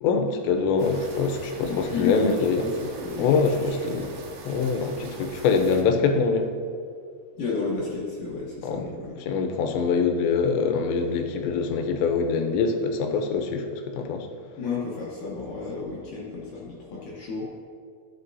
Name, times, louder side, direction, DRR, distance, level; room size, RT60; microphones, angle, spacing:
voice 1, 0.0-2.6 3.2-4.1 4.5-6.5 8.6-8.8 9.3-14.3, left 5 dB, 85° left, 5 dB, 3.0 m, -24 dB
sound 1, 0.8-5.8, right 3 dB, 85° right, 3.6 m, -42 dB
voice 2, 1.6-4.2 7.4-9.2 14.6-17.5, left 4 dB, 70° left, -5 dB, 2.1 m, -32 dB
14.0 x 8.2 x 2.7 m, 2.2 s
omnidirectional pair, 5.0 m